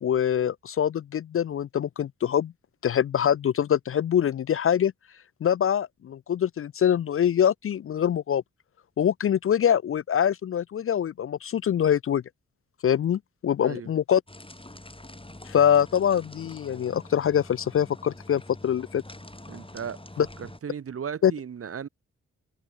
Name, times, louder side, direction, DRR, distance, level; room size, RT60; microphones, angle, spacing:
voice 1, 0.0-2.5 2.8-4.9 5.4-8.4 9.0-12.2 12.8-14.2 15.5-19.0 20.2-20.3 21.2-21.3, left 9 dB, 45° left, 0.4 m, -24 dB
sound 1, 14.3-20.6, left 1 dB, 15° left, 7.4 m, -45 dB
voice 2, 19.5-21.9, right 7 dB, 45° right, 0.8 m, -36 dB
supercardioid pair, 40°, 32 cm